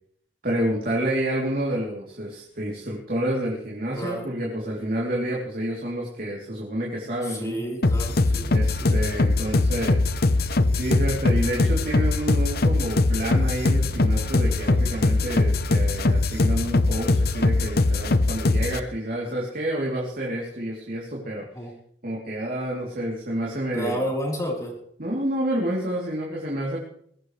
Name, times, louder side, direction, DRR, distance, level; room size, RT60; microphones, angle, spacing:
voice 1, 0.4-7.6 8.5-10.1 10.8-21.4 22.0-24.0 25.0-26.8, right 1 dB, 55° right, -4 dB, 3.2 m, -29 dB
voice 2, 7.2-8.5 8.8-8.9 21.5-21.7 23.7-24.7, equal, 20° left, -3 dB, 4.2 m, -30 dB
sound 1, 7.8-18.8, left 2 dB, 60° left, 0.8 m, -21 dB
22.5 x 16.5 x 3.3 m, 0.67 s
head